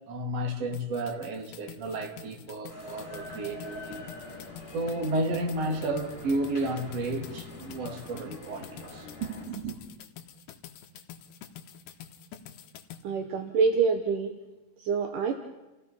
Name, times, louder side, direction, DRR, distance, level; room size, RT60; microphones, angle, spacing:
voice 1, 0.1-4.1 4.7-9.7, right 1 dB, 45° right, 2.7 m, -32 dB
sound 1, 0.7-13.0, left 9 dB, 75° left, 3.2 m, -47 dB
sound 2, 2.7-9.5, left 2 dB, 20° left, 6.6 m, -44 dB
voice 2, 13.0-14.3 14.8-15.3, right 5 dB, 70° right, 2.1 m, -26 dB
30.0 x 17.0 x 5.7 m
omnidirectional pair, 5.2 m